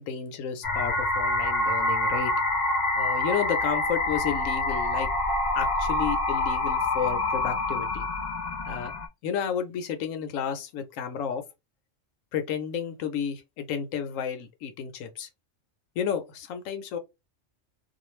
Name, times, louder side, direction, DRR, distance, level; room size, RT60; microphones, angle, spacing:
voice 1, 0.0-2.3 2.9-5.1 5.5-8.1 8.6-8.9 9.2-11.4 12.3-15.3 16.0-17.0, left 8 dB, 80° left, 1.0 m, -32 dB
sound 1, 0.6-9.1, left 2 dB, 55° left, 0.4 m, -26 dB
2.4 x 2.2 x 3.0 m
omnidirectional pair, 1.3 m